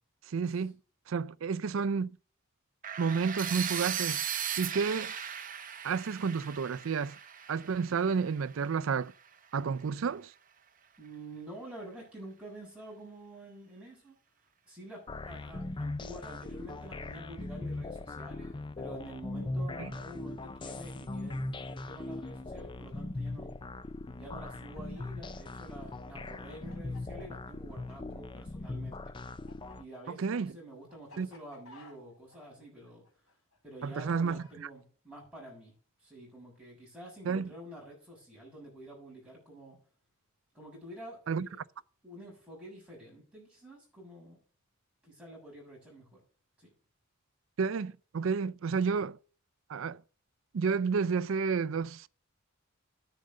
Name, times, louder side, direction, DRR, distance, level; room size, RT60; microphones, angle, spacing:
voice 1, 0.3-0.7 1.1-2.1 3.0-4.2 4.6-5.1 5.8-7.2 7.5-9.1 9.5-10.3 19.8-19.9 30.1-30.6 31.2-31.3 33.8-34.4 37.3-37.5 41.3-41.5 47.6-49.2 49.7-50.0 50.5-52.1, right 5 dB, 70° right, 0.4 m, -31 dB
sound 1, 2.8-8.8, right 9 dB, 40° right, 0.9 m, -37 dB
voice 2, 11.0-14.2 14.7-23.5 24.2-29.0 29.8-33.0 33.6-35.7 36.0-39.8 40.5-41.6 42.0-44.4 45.0-46.1 46.6-46.7, right 1 dB, 5° right, 6.9 m, -48 dB
sound 2, 15.1-29.8, left 2 dB, 25° left, 0.4 m, -40 dB
Chicken rooster, 24.3-28.7 28.9-34.6, left 3 dB, 85° left, 3.8 m, -57 dB
10.5 x 6.3 x 6.5 m
head